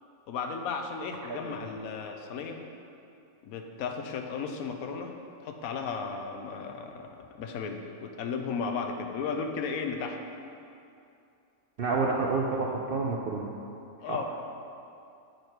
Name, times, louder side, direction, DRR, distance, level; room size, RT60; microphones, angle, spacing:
voice 1, 0.3-2.6 3.4-5.1 5.4-10.2 14.0-14.2, left 5 dB, 85° left, 4 dB, 1.1 m, -35 dB
voice 2, 11.8-13.5 14.0-14.2, right 4 dB, 65° right, -1 dB, 0.6 m, -29 dB
7.8 x 4.7 x 4.5 m, 2.6 s
omnidirectional pair, 1.5 m